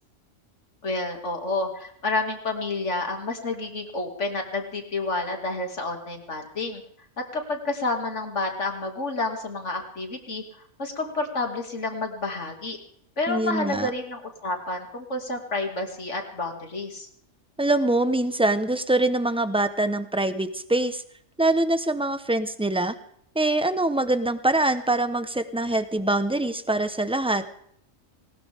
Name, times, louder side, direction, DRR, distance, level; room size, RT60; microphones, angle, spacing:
voice 1, 0.8-6.8 7.3-10.4 10.8-12.8 13.2-17.1, left 2 dB, 60° left, 3 dB, 2.9 m, -29 dB
voice 2, 13.3-13.9 17.6-21.0 21.4-23.0 23.3-27.4, right 2 dB, 5° right, 10 dB, 0.9 m, -24 dB
20.0 x 19.5 x 3.6 m, 0.69 s
omnidirectional pair, 1.4 m